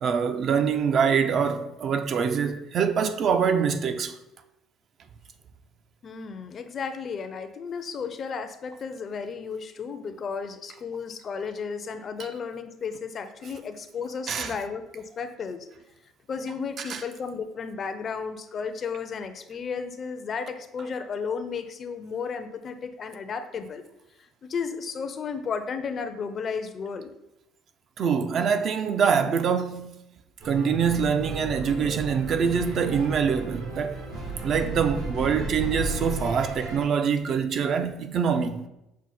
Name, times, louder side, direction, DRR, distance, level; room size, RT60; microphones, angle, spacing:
voice 1, 0.0-4.1 14.3-14.5 16.9-17.0 28.0-29.9 30.4-34.0 34.4-38.6, right 6 dB, 50° right, 0.4 m, -24 dB
voice 2, 6.0-15.7 16.3-23.8 24.4-27.1, left 5 dB, 40° left, 0.4 m, -33 dB
sound 1, 30.4-36.8, right 2 dB, 80° right, 1.4 m, -34 dB
6.1 x 2.1 x 4.0 m
cardioid pair, 110°, 0 cm